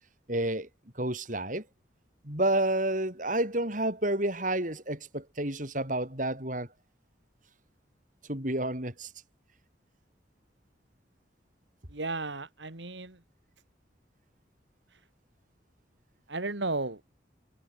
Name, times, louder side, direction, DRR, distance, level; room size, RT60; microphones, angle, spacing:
voice 1, 0.3-0.7 1.0-1.7 2.2-6.7 8.3-9.1, right 1 dB, 45° right, 7.3 m, -30 dB
voice 2, 11.9-13.2 16.3-17.0, right 3 dB, 80° right, 2.9 m, -34 dB
head